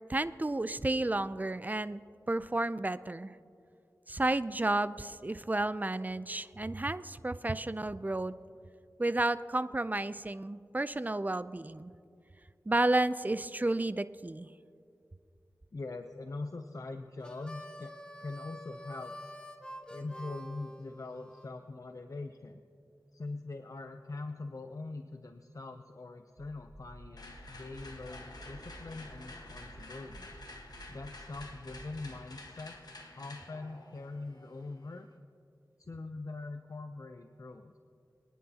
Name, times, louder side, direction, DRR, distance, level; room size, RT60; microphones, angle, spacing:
voice 1, 0.1-2.0 2.3-3.3 4.1-8.3 9.0-11.9 12.7-14.5, right 2 dB, 25° right, 14 dB, 0.4 m, -31 dB
voice 2, 15.7-17.9 18.2-19.1 19.9-22.6 23.1-30.3 30.9-32.8 33.2-35.1 35.8-37.8, left 3 dB, 55° left, 7 dB, 0.5 m, -43 dB
Harmonica, 17.2-21.5, equal, 15° left, 1.0 m, -47 dB
sound 1, 26.4-32.2, right 1 dB, 85° right, 1.5 m, -52 dB
sound 2, 27.2-35.1, left 2 dB, 70° left, 1.3 m, -51 dB
23.5 x 10.0 x 2.8 m, 2.4 s
wide cardioid pair, 50°, 7 cm